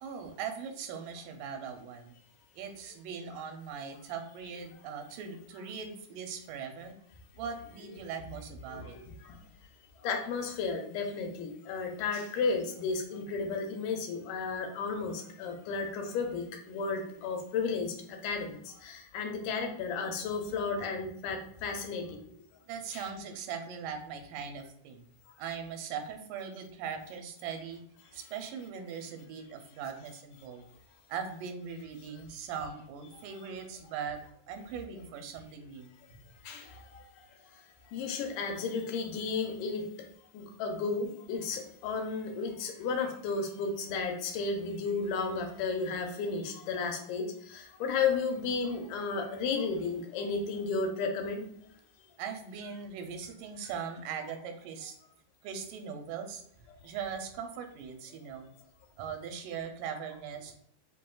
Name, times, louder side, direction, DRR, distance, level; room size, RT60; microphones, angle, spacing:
voice 1, 0.0-2.1 2.5-7.0 7.4-9.0 22.7-25.1 25.4-27.8 28.1-30.6 31.1-34.2 34.5-35.9 52.2-55.0 55.4-56.4 56.8-58.5 59.0-60.5, right 6 dB, 85° right, 5 dB, 2.3 m, -40 dB
voice 2, 10.0-22.2 22.9-23.1 36.5-37.0 37.9-39.8 40.3-51.4, left 4 dB, 90° left, 3 dB, 2.3 m, -33 dB
5.9 x 3.1 x 2.3 m, 0.69 s
omnidirectional pair, 3.7 m